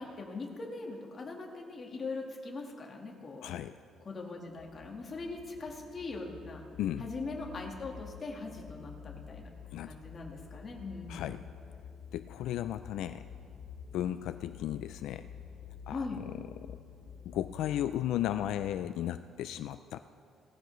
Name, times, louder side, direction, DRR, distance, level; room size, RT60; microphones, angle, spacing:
voice 1, 0.0-3.5 4.0-6.6 7.0-9.5 9.9-11.3 15.9-16.2, left 3 dB, 30° left, 1 dB, 1.5 m, -41 dB
voice 2, 3.4-3.8 6.8-7.1 9.7-10.0 11.1-11.5 12.1-13.3 13.9-15.3 15.9-16.8 17.3-20.0, left 11 dB, 75° left, 11 dB, 0.3 m, -35 dB
sound 1, 4.5-18.9, left 7 dB, 50° left, 0.8 m, -49 dB
18.0 x 14.5 x 3.1 m, 2.4 s
cardioid pair, 170°, 0 cm